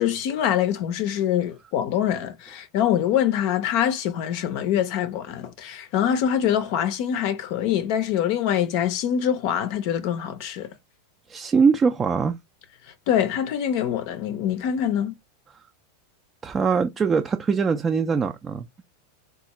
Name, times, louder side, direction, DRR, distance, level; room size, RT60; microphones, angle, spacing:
voice 1, 0.0-10.7 13.1-15.1, left 10 dB, 55° left, 0.5 m, -24 dB
voice 2, 11.3-12.4 16.4-18.7, right 5 dB, 25° right, 0.3 m, -22 dB
3.5 x 2.4 x 2.9 m
hypercardioid pair, 100°, 0 cm